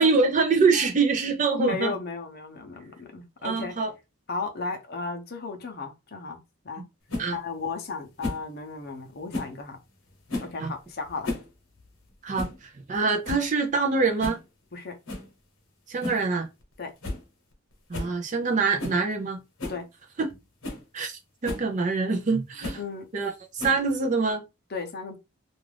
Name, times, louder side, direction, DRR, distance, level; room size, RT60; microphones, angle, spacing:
voice 1, 0.0-2.0 3.4-3.9 7.2-7.4 10.6-10.7 12.2-14.4 15.9-16.5 17.9-19.4 20.2-20.3 20.9-22.8 23.1-24.4, right 4 dB, 35° right, 0.4 m, -25 dB
voice 2, 1.6-3.7 4.3-6.4 6.6-6.8 7.3-9.8 10.4-11.3 14.7-14.9 16.8-16.9 19.7-19.8 22.8-23.1 24.7-25.2, left 4 dB, 45° left, 0.6 m, -34 dB
sound 1, 7.1-7.3 8.2-8.5 9.3-9.6 10.3-10.6 11.1-11.5 11.8-11.9 12.3-12.6 12.9-13.0 13.2-13.5 14.2-14.4 15.1-15.3 16.0-16.3 16.6-16.7 17.0-17.2 17.5-17.6 17.9-18.1 18.8-19.0 19.6-19.8 20.3-20.4 20.6-20.8 21.4-21.7 22.6-22.8 23.6-24.0, left 2 dB, 75° left, 1.0 m, -33 dB
2.4 x 2.4 x 3.3 m
head